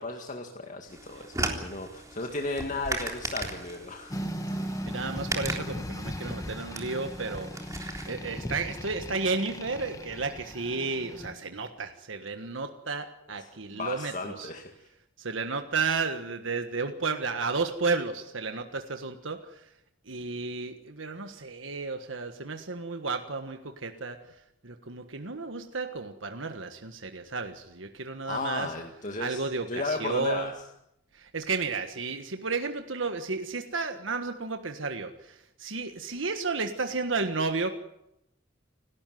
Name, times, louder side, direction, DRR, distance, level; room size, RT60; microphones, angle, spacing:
voice 1, 0.0-4.2 4.6-4.8 13.4-13.5 13.7-14.7 28.2-30.5, left 3 dB, 40° left, 2 dB, 2.2 m, -35 dB
sound 1, 0.9-8.1, right 2 dB, 15° right, 3.6 m, -37 dB
sound 2, 4.1-11.3, equal, 20° left, 1.5 m, -37 dB
voice 2, 4.5-14.5 15.2-19.6 20.1-24.2 24.6-28.7 29.2-30.5 31.1-37.7, right 4 dB, 80° right, 6 dB, 1.5 m, -32 dB
29.0 x 13.0 x 9.4 m, 0.82 s
head